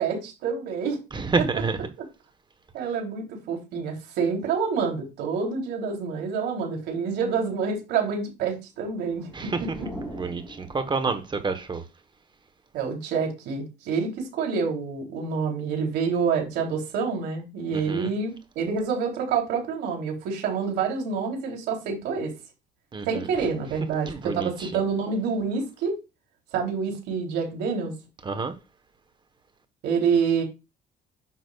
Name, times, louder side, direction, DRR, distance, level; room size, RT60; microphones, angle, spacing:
voice 1, 0.0-1.0 2.7-9.9 12.7-22.3 23.0-26.0 26.5-27.9 29.8-30.4, right 5 dB, 85° right, 3.3 m, -27 dB
voice 2, 1.1-1.8 9.3-9.6 10.1-11.8 17.7-18.1 22.9-23.3 24.1-24.7 28.2-28.5, right 4 dB, 30° right, 1.2 m, -28 dB
sound 1, 8.9-11.5, equal, 10° left, 4.3 m, -42 dB
9.5 x 6.2 x 2.4 m
cardioid pair, 110°, 17 cm